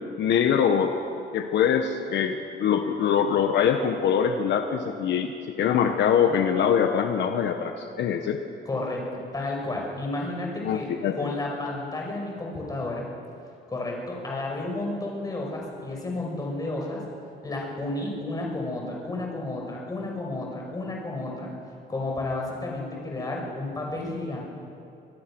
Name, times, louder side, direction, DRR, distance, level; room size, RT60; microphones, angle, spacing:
voice 1, 0.2-0.9 1.3-8.4 10.6-11.3, left 8 dB, 70° left, 6 dB, 1.3 m, -23 dB
voice 2, 8.7-9.0 9.3-13.0 13.7-17.0 17.4-21.5 21.9-24.4, left 2 dB, 20° left, -1 dB, 5.4 m, -32 dB
24.5 x 20.5 x 6.2 m, 2.6 s
cardioid pair, 150°, 19 cm